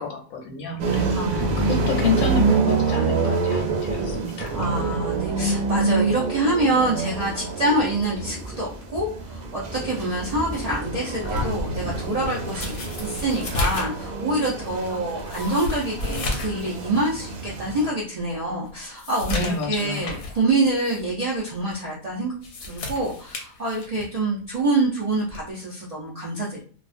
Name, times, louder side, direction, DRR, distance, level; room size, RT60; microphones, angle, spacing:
voice 1, 0.0-4.5 19.3-20.1, left 4 dB, 80° left, 3 dB, 1.0 m, -29 dB
sound 1, 0.8-17.9, right 4 dB, 80° right, 1.1 m, -27 dB
voice 2, 1.1-1.8 4.5-22.3 22.6-26.6, right 2 dB, 55° right, -6 dB, 0.4 m, -26 dB
Thunder, 3.4-15.0, equal, 10° right, 1.0 m, -41 dB
sound 2, 11.2-16.6 17.0-17.1 17.6-17.7 18.2-20.4 20.8-21.0 22.2-24.2 25.3-25.5, left 2 dB, 60° left, 0.8 m, -32 dB
2.4 x 2.3 x 2.4 m, 0.43 s
omnidirectional pair, 1.5 m